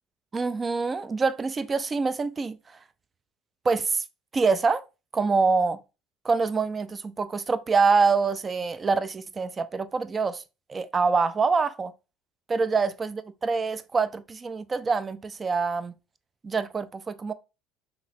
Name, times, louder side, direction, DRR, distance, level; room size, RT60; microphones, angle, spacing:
voice 1, 0.3-2.6 3.6-4.0 4.3-4.8 5.1-5.8 6.2-10.4 10.7-11.9 12.5-15.9 16.4-17.3, right 4 dB, 25° right, 0.3 m, -25 dB
3.1 x 2.9 x 2.5 m
supercardioid pair, 95°, 0 cm